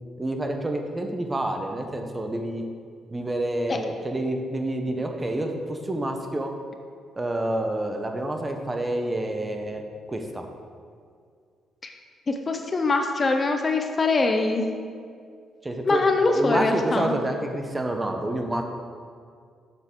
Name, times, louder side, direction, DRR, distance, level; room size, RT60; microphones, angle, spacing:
voice 1, 0.2-2.6 3.1-6.5 7.2-9.8 10.1-10.5 15.6-16.0 16.3-18.6, right 1 dB, 20° right, 4 dB, 0.8 m, -28 dB
voice 2, 12.3-14.7 15.9-17.2, left 3 dB, 35° left, 5 dB, 0.6 m, -23 dB
7.6 x 6.8 x 3.7 m, 2.2 s
cardioid pair, 90°, 0 cm